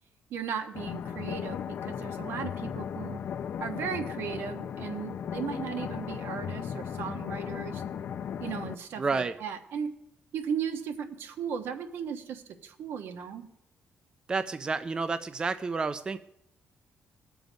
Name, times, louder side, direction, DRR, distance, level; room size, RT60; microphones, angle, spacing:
voice 1, 0.3-3.2 3.6-7.8 8.4-9.9 10.3-13.4, right 7 dB, 80° right, 6 dB, 1.3 m, -36 dB
sound 1, 0.7-8.7, left 8 dB, 60° left, 0.6 m, -36 dB
voice 2, 9.0-9.4 14.3-16.2, right 4 dB, 20° right, 12 dB, 0.4 m, -30 dB
20.0 x 6.9 x 5.2 m, 0.80 s
cardioid pair, 155°, 4 cm